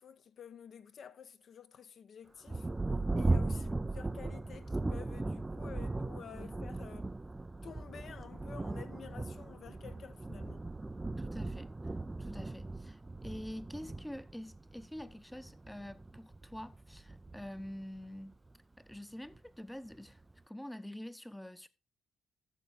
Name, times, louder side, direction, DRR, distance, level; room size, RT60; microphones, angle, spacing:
voice 1, 0.0-2.7 3.1-7.1 7.6-10.7, left 8 dB, 55° left, 0.9 m, -51 dB
Thunder, 2.5-18.5 19.3-19.4 19.9-20.4, right 2 dB, 15° right, 0.4 m, -38 dB
voice 2, 11.2-18.4 18.8-21.7, left 1 dB, 5° left, 0.9 m, -46 dB
14.0 x 6.8 x 3.7 m
cardioid pair, 90°, 0 cm